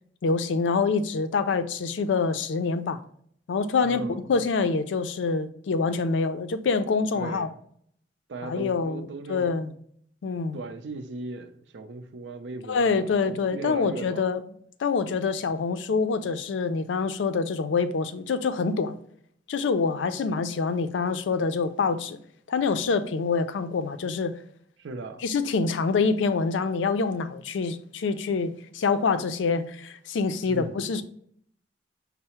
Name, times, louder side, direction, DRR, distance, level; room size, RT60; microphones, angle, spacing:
voice 1, 0.2-3.0 3.5-7.5 8.4-9.7 10.2-10.6 12.7-14.4 14.8-19.0 19.5-22.2 22.5-24.3 25.2-31.0, left 4 dB, 90° left, 0.4 m, -26 dB
voice 2, 3.8-4.2 7.1-7.6 8.3-9.5 10.5-14.3 24.8-25.2 30.5-30.8, right 3 dB, 80° right, 0.5 m, -38 dB
5.5 x 2.0 x 4.2 m
head